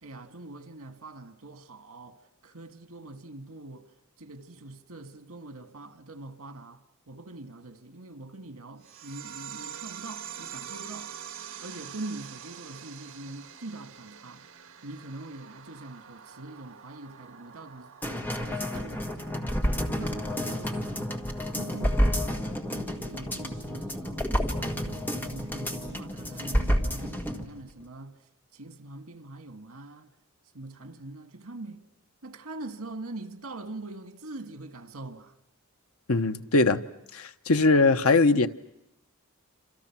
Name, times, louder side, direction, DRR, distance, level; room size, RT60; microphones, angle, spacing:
voice 1, 0.0-3.9 4.2-11.1 11.6-14.4 14.8-17.9 18.3-19.4 19.9-21.1 21.4-22.0 22.7-24.2 24.6-28.2 28.5-30.1 30.5-31.8 32.2-35.3, right 2 dB, 85° right, 1.8 m, -43 dB
sound 1, 8.8-19.8, right 9 dB, 70° right, 1.7 m, -45 dB
sound 2, 18.0-27.4 27.8-27.9, equal, 10° left, 1.8 m, -29 dB
voice 2, 36.1-36.8 37.1-38.5, left 3 dB, 80° left, 1.0 m, -21 dB
28.5 x 27.0 x 6.0 m
head